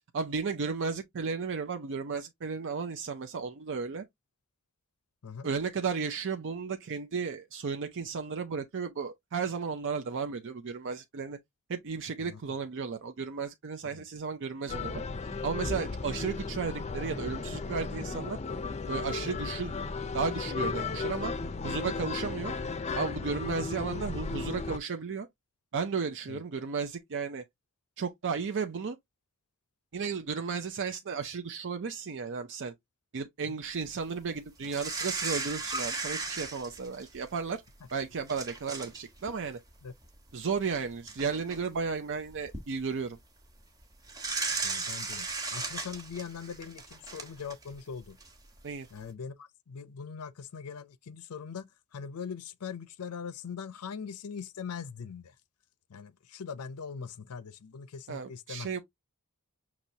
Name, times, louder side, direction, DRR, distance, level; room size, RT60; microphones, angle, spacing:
voice 1, 0.1-4.0 5.4-11.4 11.7-15.0 15.4-18.4 18.9-19.7 20.1-21.3 21.6-22.5 23.0-25.3 25.7-27.4 28.0-29.0 29.9-32.7 33.1-37.6 37.9-39.6 40.3-43.2 48.6-48.9 58.1-58.8, right 5 dB, 55° right, 0.5 m, -34 dB
sound 1, 14.7-24.8, left 4 dB, 30° left, 0.5 m, -35 dB
sound 2, 34.6-37.3 37.9-38.0 38.3-39.0 39.3-39.5 40.6-40.7 41.1-41.6 42.3-42.6 44.1-47.7 48.2-48.3, right 3 dB, 15° right, 1.1 m, -36 dB
voice 2, 44.6-48.2 48.9-55.3 55.9-58.7, left 6 dB, 80° left, 0.5 m, -41 dB
5.9 x 3.0 x 2.7 m
head